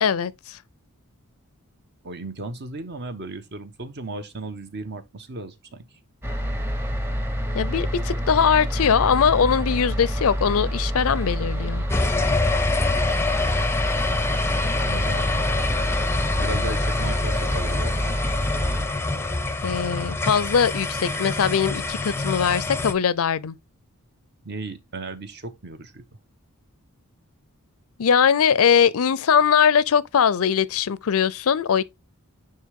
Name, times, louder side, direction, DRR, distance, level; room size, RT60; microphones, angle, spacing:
voice 1, 0.0-0.6 7.5-11.8 19.6-23.5 28.0-31.8, left 7 dB, 70° left, 0.5 m, -21 dB
voice 2, 2.0-5.9 14.2-18.2 24.4-26.0, right 2 dB, 50° right, 1.0 m, -36 dB
sound 1, 6.2-18.9, equal, 10° right, 0.9 m, -27 dB
sound 2, 11.9-22.9, left 3 dB, 10° left, 0.6 m, -26 dB
9.5 x 3.4 x 3.6 m
head